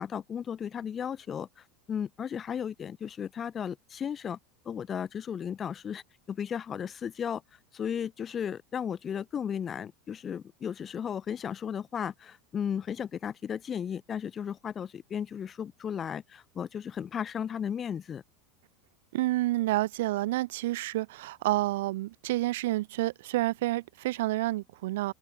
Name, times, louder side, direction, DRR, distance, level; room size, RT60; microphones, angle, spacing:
voice 1, 0.0-4.4 4.6-6.0 6.3-7.4 7.7-18.2, left 8 dB, 20° left, 6.2 m, -35 dB
voice 2, 19.1-25.1, right 17 dB, 75° right, 3.3 m, -29 dB
open air
supercardioid pair, 170°, 0 cm